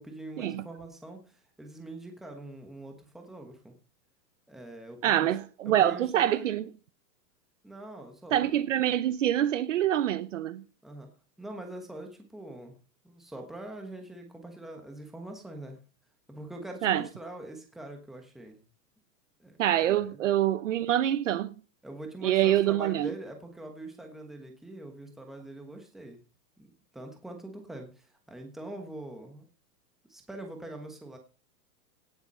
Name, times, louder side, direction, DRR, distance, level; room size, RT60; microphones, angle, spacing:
voice 1, 0.0-3.7 4.5-5.4 5.6-6.5 7.6-8.6 10.8-11.1 11.4-12.8 13.0-15.8 16.3-18.6 19.4-20.1 21.8-26.2 26.6-26.7 26.9-29.5 30.1-31.2, right 1 dB, ahead, 1.2 m, -43 dB
voice 2, 5.0-6.6 8.3-10.6 16.8-17.0 19.6-21.5 22.2-23.1, right 12 dB, 50° right, 0.8 m, -25 dB
17.5 x 7.1 x 5.5 m
supercardioid pair, 175°, 49 cm